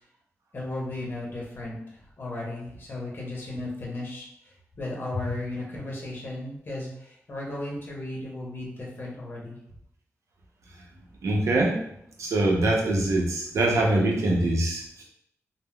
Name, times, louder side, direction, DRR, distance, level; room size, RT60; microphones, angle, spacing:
voice 1, 0.5-9.6, left 2 dB, 40° left, -3 dB, 0.7 m, -35 dB
voice 2, 11.2-11.8 12.2-15.0, right 2 dB, 80° right, -1 dB, 0.6 m, -23 dB
3.6 x 2.0 x 2.2 m, 0.72 s
wide cardioid pair, 110°, 5 cm